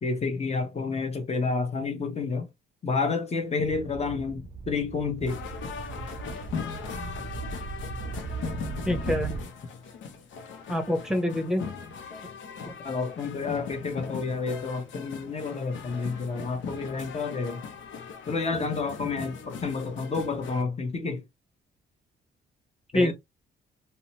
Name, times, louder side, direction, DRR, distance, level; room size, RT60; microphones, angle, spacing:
voice 1, 0.0-2.5 2.8-5.5 12.8-17.6 18.3-21.2 22.9-23.1, left 4 dB, 30° left, 0.9 m, -30 dB
sound 1, 3.6-9.5, right 4 dB, 30° right, 0.5 m, -38 dB
sound 2, 5.2-20.6, left 5 dB, 70° left, 0.7 m, -39 dB
voice 2, 8.9-9.4 10.7-11.7 12.6-12.7 22.9-23.1, left 1 dB, 5° right, 0.8 m, -26 dB
2.8 x 2.1 x 2.8 m
cardioid pair, 90°, 20 cm